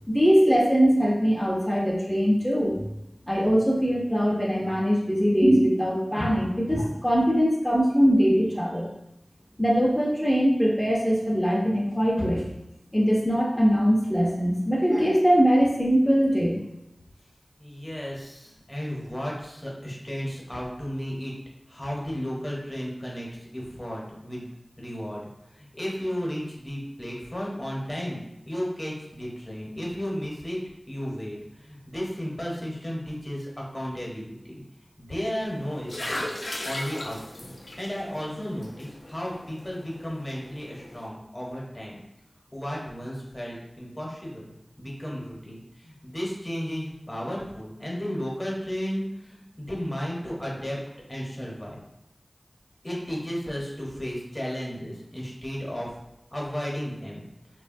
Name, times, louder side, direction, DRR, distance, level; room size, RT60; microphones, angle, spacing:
voice 1, 0.1-2.8 3.3-8.9 9.6-12.4 12.9-16.6, equal, 5° left, -4 dB, 0.5 m, -22 dB
voice 2, 17.6-21.3 21.7-24.4 24.8-25.2 25.5-30.6 30.9-34.6 35.0-42.0 42.5-44.5 44.8-50.8 51.1-51.8 52.8-56.0 56.3-57.3, equal, 30° left, -4 dB, 0.8 m, -34 dB
sound 1, 35.5-41.1, left 1 dB, 65° left, 0.4 m, -38 dB
3.1 x 2.2 x 2.5 m, 0.87 s
wide cardioid pair, 50°, 0 cm